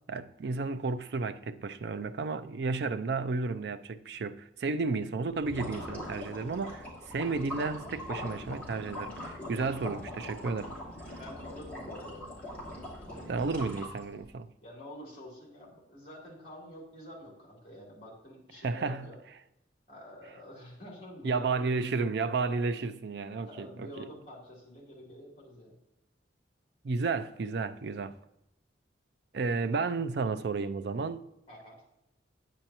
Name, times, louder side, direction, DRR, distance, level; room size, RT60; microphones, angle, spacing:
voice 1, 0.1-10.7 13.3-14.5 18.6-19.1 21.2-24.1 26.8-28.1 29.3-31.3, right 4 dB, 60° right, 0.4 m, -32 dB
sound 1, 5.3-14.3, left 1 dB, 10° left, 2.4 m, -41 dB
voice 2, 11.2-12.3 13.0-13.4 14.6-19.2 19.9-21.7 23.3-25.8 31.5-31.8, equal, 35° left, 2.9 m, -48 dB
9.0 x 8.9 x 2.9 m
head